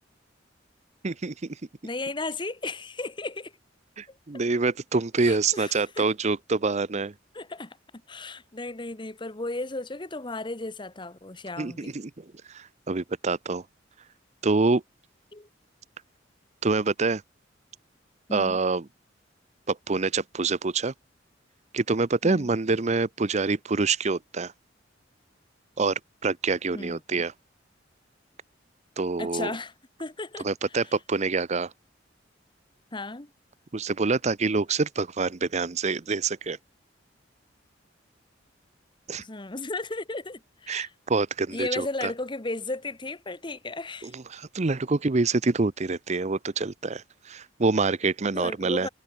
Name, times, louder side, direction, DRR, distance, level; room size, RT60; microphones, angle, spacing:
voice 1, 1.0-1.6 4.0-7.1 11.6-13.6 14.4-14.8 16.6-17.2 18.3-18.8 19.7-20.9 21.7-24.5 25.8-27.3 29.0-29.5 30.4-31.7 33.7-36.6 39.1-39.2 40.7-42.1 44.0-48.9, right 3 dB, 40° right, 0.7 m, -26 dB
voice 2, 1.8-3.5 4.1-4.4 5.2-6.1 7.3-7.8 8.1-11.9 15.3-15.5 18.3-18.6 22.2-22.5 26.7-27.2 29.2-29.7 30.0-30.5 32.9-33.3 39.2-40.9 41.5-44.1 48.3-48.9, left 2 dB, 25° left, 1.3 m, -35 dB
head